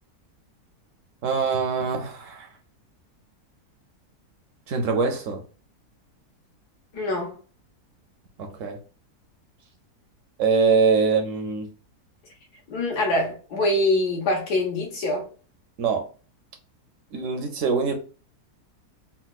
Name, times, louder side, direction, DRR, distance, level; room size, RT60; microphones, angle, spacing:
voice 1, 1.2-2.5 4.7-5.4 8.4-8.8 10.4-11.7 15.8-16.1 17.1-17.9, right 5 dB, 65° right, 0.8 m, -23 dB
voice 2, 6.9-7.3 12.7-15.3, left 1 dB, 90° left, 1.7 m, -24 dB
4.1 x 2.2 x 2.3 m
omnidirectional pair, 1.7 m